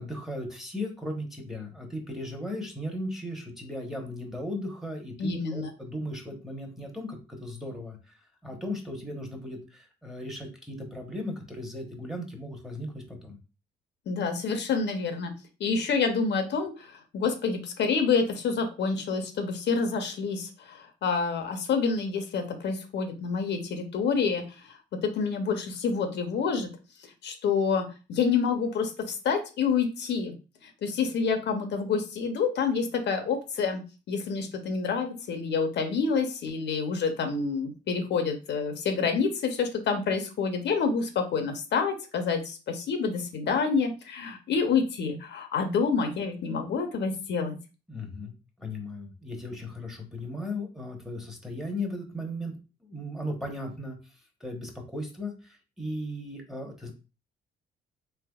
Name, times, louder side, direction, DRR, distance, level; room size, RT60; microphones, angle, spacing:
voice 1, 0.0-8.2 8.4-13.4 47.9-52.6 52.8-54.0 54.4-56.9, left 1 dB, ahead, 2 dB, 0.9 m, -37 dB
voice 2, 5.2-5.7 14.1-15.3 15.6-24.8 25.0-26.7 27.2-30.3 30.8-33.8 34.1-47.6, left 5 dB, 65° left, 6 dB, 0.6 m, -28 dB
3.3 x 2.9 x 2.3 m, 0.32 s
cardioid pair, 90°, 20 cm